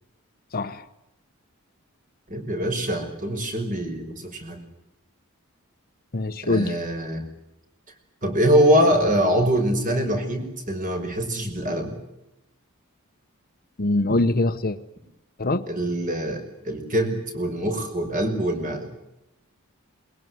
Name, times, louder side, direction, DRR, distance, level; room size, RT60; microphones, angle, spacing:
voice 1, 0.5-0.8 6.1-6.8 13.8-14.8 15.4-15.6, left 2 dB, 45° left, 1.0 m, -23 dB
voice 2, 2.3-4.6 6.4-7.2 8.2-11.9 15.7-18.9, equal, 40° right, 5.7 m, -23 dB
22.5 x 21.5 x 9.5 m
head